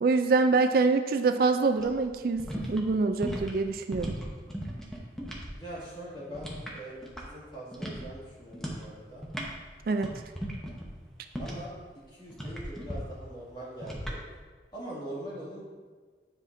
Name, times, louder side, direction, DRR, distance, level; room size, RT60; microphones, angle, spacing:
voice 1, 0.0-4.1 9.9-10.1, right 4 dB, 55° right, 7 dB, 0.3 m, -25 dB
sound 1, 1.7-5.5 5.8-7.5 7.7-8.1 8.5-8.9 9.1-11.8 12.3-13.0 13.8-14.2, equal, 5° left, 0.9 m, -37 dB
voice 2, 5.5-9.2 11.4-11.7 12.1-14.2 14.7-15.6, right 1 dB, 25° left, -7 dB, 2.1 m, -42 dB
9.7 x 5.7 x 2.6 m, 1.5 s
head